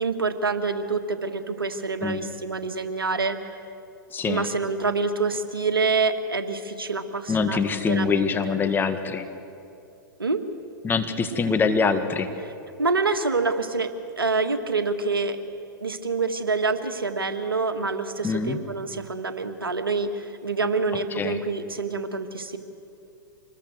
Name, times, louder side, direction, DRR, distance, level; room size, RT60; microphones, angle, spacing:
voice 1, 0.0-3.6 4.3-8.6 10.2-10.4 12.8-13.9 14.2-15.4 15.8-22.6, right 4 dB, 90° right, 8 dB, 1.7 m, -26 dB
voice 2, 4.1-4.4 7.3-9.3 10.8-12.3 18.2-18.6 21.2-21.4, left 5 dB, 15° left, 7 dB, 1.7 m, -24 dB
26.0 x 20.5 x 8.0 m, 2.6 s
hypercardioid pair, 105°, 12 cm